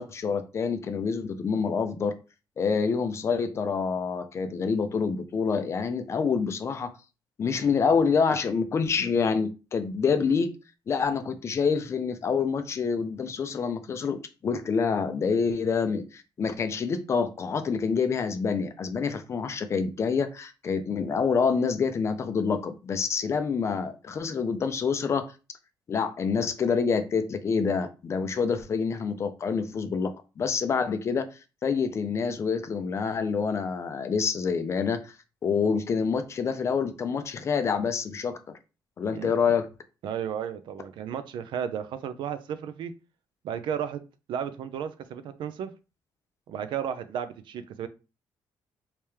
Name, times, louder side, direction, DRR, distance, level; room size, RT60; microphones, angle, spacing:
voice 1, 0.0-2.1 2.6-6.9 7.4-10.5 10.9-25.3 25.9-31.3 31.6-35.1 35.4-38.6 39.0-39.7, left 5 dB, 30° left, 0.4 m, -27 dB
voice 2, 40.0-42.9 43.4-44.0 44.3-45.7 46.5-47.9, right 8 dB, 65° right, 0.4 m, -33 dB
3.4 x 2.8 x 3.2 m
cardioid pair, 170°, 9 cm